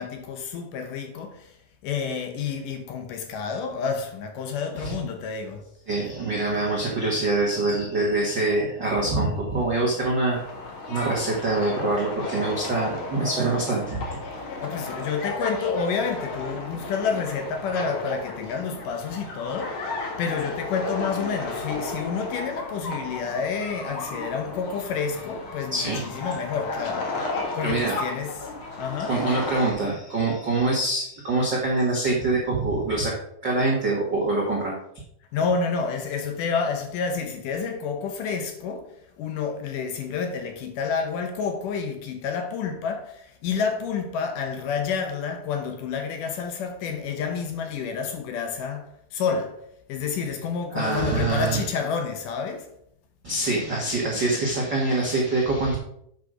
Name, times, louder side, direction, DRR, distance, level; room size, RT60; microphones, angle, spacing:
voice 1, 0.0-1.6 1.8-5.6 14.5-28.5 28.8-29.2 35.3-49.6 49.9-52.7, left 5 dB, 75° left, 2.0 m, -29 dB
voice 2, 5.9-10.4 10.9-14.0 23.8-23.9 25.7-26.3 27.6-28.0 29.1-33.1 33.4-34.8 50.7-51.6 53.2-55.8, right 2 dB, 65° right, 1.0 m, -25 dB
sound 1, 10.3-29.7, left 3 dB, 55° left, 1.5 m, -34 dB
8.2 x 6.2 x 4.9 m
omnidirectional pair, 4.8 m